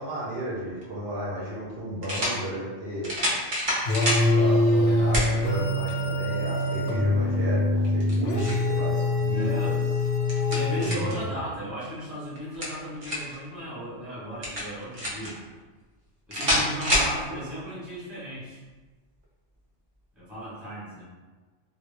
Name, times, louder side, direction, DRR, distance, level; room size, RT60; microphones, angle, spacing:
voice 1, 0.0-3.1 4.3-9.8, right 1 dB, 65° right, -5 dB, 0.8 m, -34 dB
sound 1, 0.8-0.9 2.0-2.4 3.0-4.3 5.1-5.3 5.9-6.0 7.8-8.7 10.0-11.2 12.4-13.4 14.4-15.3 16.3-17.1, equal, 40° right, 0.5 m, -27 dB
sound 2, 3.8-11.3, left 1 dB, 85° left, 0.9 m, -24 dB
voice 2, 9.3-9.8 10.5-15.4 16.3-18.6 20.2-21.0, equal, ahead, -9 dB, 0.7 m, -35 dB
2.1 x 2.1 x 3.1 m, 1.3 s
omnidirectional pair, 1.2 m